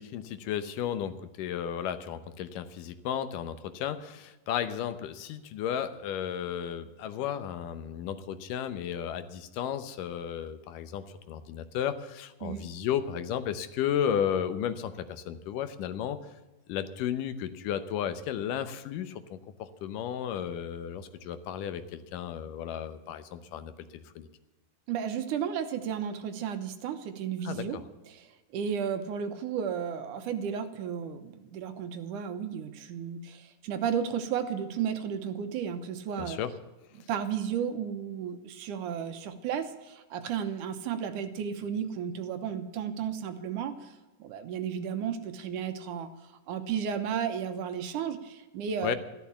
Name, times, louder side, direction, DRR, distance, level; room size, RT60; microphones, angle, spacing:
voice 1, 0.0-16.2 16.7-24.3 27.5-27.8 36.2-36.5 48.8-49.0, left 9 dB, 75° left, 11 dB, 2.4 m, -34 dB
voice 2, 24.9-27.8 28.1-36.4 37.0-43.9 44.2-49.0, right 8 dB, 70° right, 8 dB, 2.4 m, -33 dB
13.0 x 12.0 x 7.0 m, 1.1 s
omnidirectional pair, 3.9 m